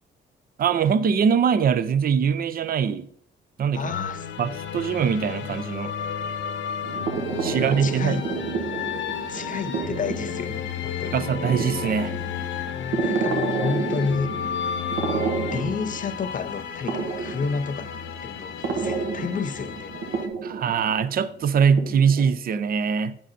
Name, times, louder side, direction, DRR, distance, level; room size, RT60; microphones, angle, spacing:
voice 1, 0.6-3.1 3.6-3.9 4.4-5.9 7.4-8.2 11.1-12.1 20.4-23.2, right 7 dB, 50° right, 0.6 m, -22 dB
voice 2, 3.7-4.3 7.5-8.3 9.3-11.3 13.0-14.3 15.5-17.9 18.2-19.9, left 5 dB, 40° left, 0.6 m, -31 dB
sound 1, 3.9-20.3, left 8 dB, 75° left, 0.9 m, -32 dB
sound 2, 6.8-22.3, right 5 dB, 75° right, 1.2 m, -31 dB
7.7 x 5.3 x 4.2 m
cardioid pair, 90°, 20 cm